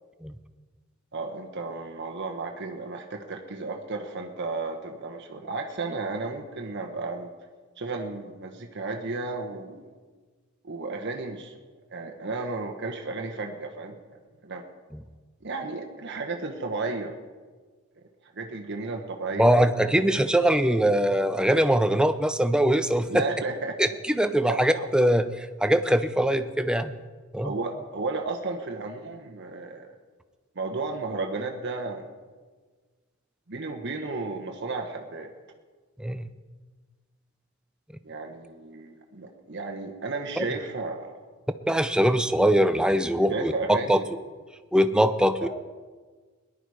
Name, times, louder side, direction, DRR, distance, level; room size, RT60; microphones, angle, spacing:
voice 1, 1.1-7.3 7.8-9.9 10.6-11.5 11.9-14.0 14.4-14.6 15.4-17.2 18.3-19.5 20.0-20.1 20.3-20.4 23.1-24.0 24.5-24.9 27.4-29.9 30.5-32.1 33.5-35.3 38.0-41.2 43.3-44.0 45.4-45.5, right 3 dB, 55° right, 3 dB, 1.1 m, -33 dB
voice 2, 19.4-23.2 23.8-26.9 27.3-27.5 36.0-36.3 40.4-40.5 41.7-44.0 44.7-45.5, right 1 dB, 5° right, 10 dB, 0.5 m, -22 dB
18.0 x 11.0 x 4.8 m, 1.4 s
head